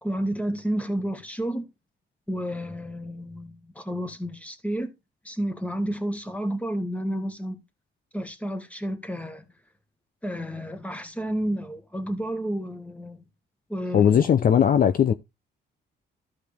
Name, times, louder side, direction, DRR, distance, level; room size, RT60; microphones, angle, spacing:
voice 1, 0.0-1.7 2.3-4.9 5.2-7.6 8.1-9.4 10.2-13.2 13.7-14.2, right 1 dB, 5° left, 1.8 m, -31 dB
voice 2, 13.9-15.1, left 8 dB, 45° left, 0.6 m, -18 dB
13.5 x 4.9 x 3.5 m
cardioid pair, 90°, 20 cm